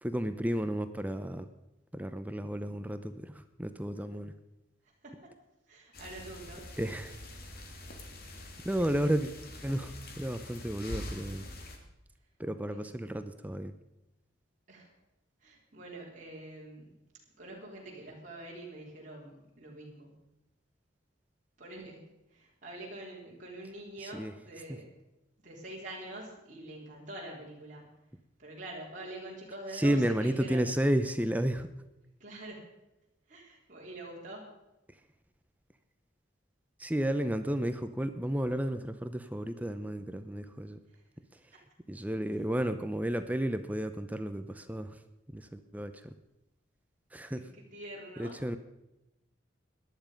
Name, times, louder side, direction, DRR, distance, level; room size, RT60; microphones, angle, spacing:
voice 1, 0.0-1.5 1.9-4.3 6.8-7.2 8.6-9.3 9.6-11.5 12.4-13.7 24.1-24.3 24.7-24.8 29.7-31.7 36.8-40.8 41.9-45.0 45.3-46.1 47.1-47.4 48.2-48.6, right 1 dB, 10° right, 10 dB, 0.6 m, -32 dB
voice 2, 5.0-5.3 5.7-6.6 12.7-12.8 14.7-14.9 15.4-16.9 17.4-20.1 21.6-24.9 25.4-27.9 28.4-30.7 32.2-32.6 33.3-34.5 40.9-41.0 41.5-41.6 47.4-48.4, right 1 dB, 40° right, -4 dB, 3.9 m, -45 dB
sound 1, 5.9-11.8, left 1 dB, 50° left, 2.4 m, -45 dB
18.0 x 11.5 x 5.2 m, 0.92 s
head